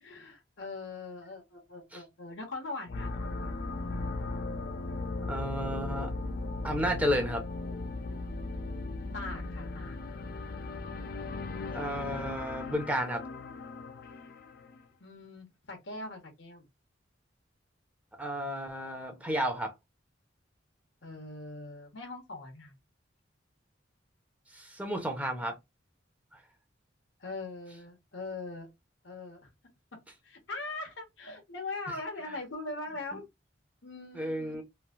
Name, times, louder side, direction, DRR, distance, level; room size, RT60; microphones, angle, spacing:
voice 1, 0.0-3.7 9.1-10.0 15.0-16.6 21.0-22.8 27.2-28.7 29.0-29.5 30.2-33.3 33.8-34.5, left 2 dB, 90° left, 1.1 m, -41 dB
sound 1, 2.9-14.8, left 3 dB, 55° left, 0.4 m, -37 dB
voice 2, 5.3-6.1 6.6-7.4 11.7-13.2 18.2-19.7 24.5-25.5 34.1-34.6, equal, 10° right, 0.6 m, -32 dB
3.2 x 2.5 x 2.4 m
head